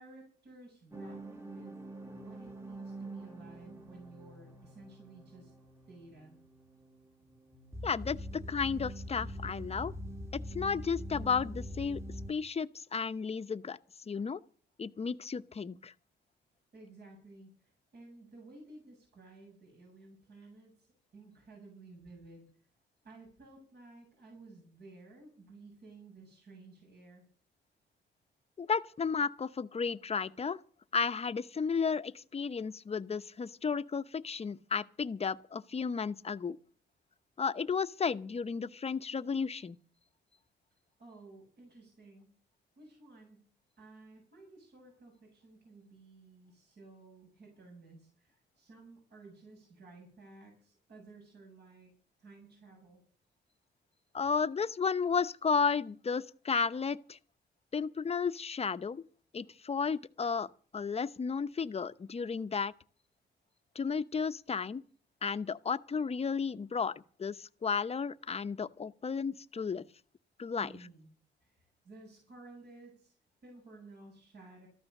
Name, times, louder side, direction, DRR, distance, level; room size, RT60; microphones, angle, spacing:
voice 1, 0.0-1.8 2.1-5.5 5.9-6.4 16.7-22.4 23.0-27.2 41.0-42.3 42.8-43.4 43.8-51.9 52.2-53.0 70.5-71.1 71.4-73.1 73.4-74.7, right 2 dB, 60° right, 7.8 m, -54 dB
sound 1, 0.9-12.3, equal, 15° right, 1.7 m, -44 dB
voice 2, 7.8-9.9 10.5-12.0 12.3-13.8 14.1-14.4 14.8-15.9 28.6-30.6 30.9-36.6 37.4-39.8 54.1-57.2 57.7-59.0 59.3-62.7 63.7-64.8 65.2-66.9 67.2-69.8 70.4-70.7, left 5 dB, 35° left, 0.9 m, -33 dB
13.5 x 13.0 x 6.6 m
cardioid pair, 85°, 19 cm